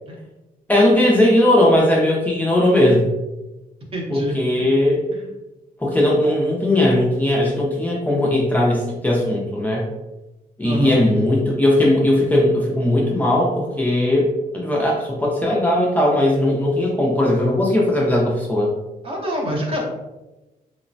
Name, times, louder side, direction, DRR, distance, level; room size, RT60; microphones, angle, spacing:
voice 1, 0.7-3.1 4.1-5.0 5.8-9.8 10.6-14.3 14.5-18.7, left 1 dB, 10° left, -4 dB, 0.3 m, -18 dB
voice 2, 3.9-4.4 5.1-5.2 10.6-11.0 19.0-19.8, equal, 40° right, -1 dB, 0.6 m, -25 dB
3.0 x 2.0 x 2.5 m, 1.1 s
wide cardioid pair, 175°, 15 cm